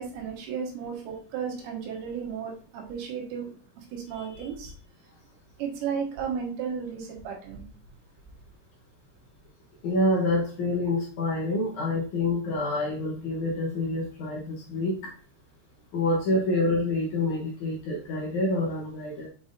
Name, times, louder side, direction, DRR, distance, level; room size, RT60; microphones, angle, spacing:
voice 1, 0.0-4.7 5.6-7.6, right 7 dB, 80° right, 1 dB, 3.2 m, -34 dB
voice 2, 9.8-15.1 15.9-19.3, left 2 dB, 65° left, -3 dB, 2.1 m, -27 dB
7.0 x 5.2 x 2.6 m, 0.39 s
omnidirectional pair, 4.6 m